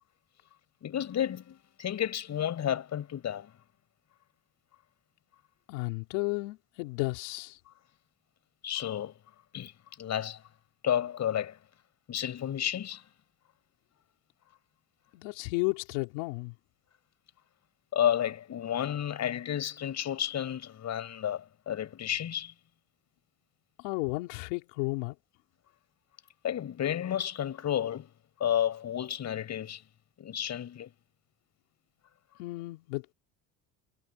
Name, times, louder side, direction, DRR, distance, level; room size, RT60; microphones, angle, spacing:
voice 1, 0.8-3.5 7.7-7.8 8.6-9.1 9.5-9.7 10.0-10.4 10.8-11.6 12.1-13.0 17.9-22.5 26.4-28.1 28.4-29.8 30.2-30.9, left 10 dB, 50° left, 6.0 m, -31 dB
voice 2, 5.7-7.6 15.1-16.5 23.8-25.1 32.4-33.1, left 25 dB, 90° left, 4.7 m, -33 dB
supercardioid pair, 100°, 36 cm